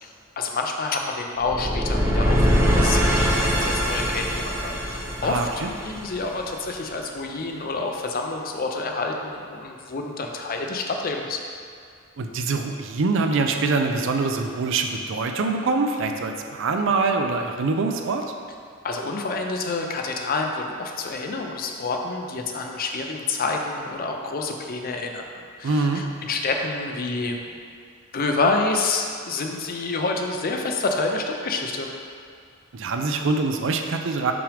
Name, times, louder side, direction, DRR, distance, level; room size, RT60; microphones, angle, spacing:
voice 1, 0.0-5.5 5.8-11.4 18.8-25.2 25.6-27.4 28.1-31.9, left 3 dB, 45° left, 2 dB, 0.5 m, -28 dB
sound 1, 1.4-6.5, equal, 10° right, 0.6 m, -22 dB
voice 2, 5.2-5.7 12.2-18.2 25.6-26.0 32.7-34.3, right 3 dB, 60° right, 4 dB, 0.5 m, -24 dB
5.9 x 5.0 x 3.3 m, 2.3 s
head